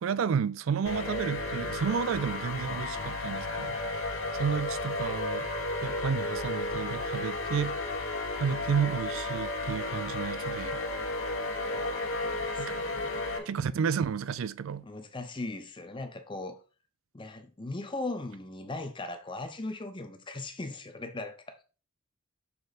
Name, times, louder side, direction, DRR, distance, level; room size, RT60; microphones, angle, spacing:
voice 1, 0.0-3.8 4.3-5.5 5.8-7.8 8.4-10.8 12.6-12.8 13.5-14.8, right 6 dB, 70° right, 0.4 m, -31 dB
sound 1, 0.9-13.4, left 2 dB, 65° left, 1.3 m, -33 dB
voice 2, 11.7-13.5 14.8-16.6 17.1-21.6, left 2 dB, 25° left, 0.7 m, -39 dB
6.9 x 3.8 x 4.1 m
head